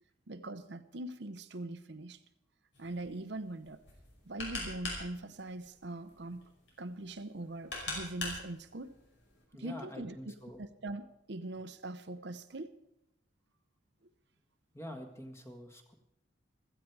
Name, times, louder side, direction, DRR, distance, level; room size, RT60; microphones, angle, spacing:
voice 1, 0.3-2.2 2.8-3.8 4.3-6.4 6.8-9.0 9.6-12.7, right 2 dB, 65° right, 0.8 m, -42 dB
Coin Sounds, 2.7-9.4, left 2 dB, 70° left, 5.5 m, -44 dB
voice 2, 9.5-10.6 14.7-15.9, equal, 15° left, 1.6 m, -46 dB
16.0 x 14.0 x 4.7 m
head